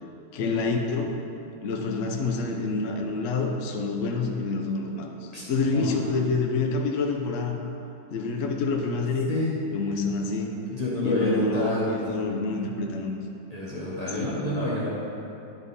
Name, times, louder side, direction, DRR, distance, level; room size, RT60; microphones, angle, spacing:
voice 1, 0.3-1.1 1.6-7.6 8.1-9.3 9.7-10.5 11.0-13.1 14.1-14.4, left 3 dB, 65° left, 1 dB, 0.8 m, -27 dB
voice 2, 5.3-5.9 9.3-9.6 10.7-12.0 13.5-14.9, left 1 dB, 25° left, -7 dB, 0.9 m, -28 dB
11.0 x 3.6 x 4.1 m, 2.8 s
omnidirectional pair, 2.1 m